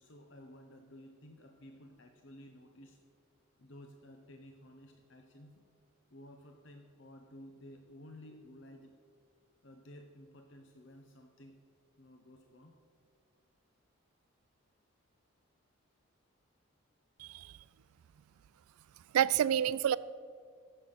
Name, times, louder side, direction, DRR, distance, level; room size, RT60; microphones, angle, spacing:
voice 1, 0.0-3.0 3.6-5.7 6.1-9.0 9.6-11.6 12.0-12.7, left 1 dB, 55° left, 5 dB, 0.8 m, -54 dB
voice 2, 17.2-17.6 19.1-20.0, right 9 dB, 90° right, 18 dB, 0.3 m, -29 dB
15.0 x 7.0 x 5.7 m, 2.1 s
head